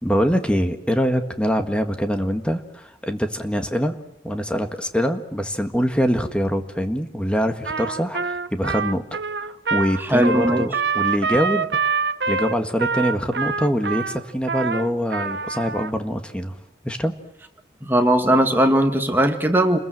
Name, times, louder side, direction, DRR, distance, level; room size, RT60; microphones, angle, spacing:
voice 1, 0.0-3.9 4.2-11.7 12.3-16.5 16.8-17.1, equal, 5° left, 1.7 m, -24 dB
Trumpet, 7.6-15.9, right 5 dB, 80° right, 1.0 m, -25 dB
voice 2, 10.0-10.7 17.8-19.8, right 1 dB, 10° right, 2.1 m, -18 dB
30.0 x 21.5 x 7.8 m
head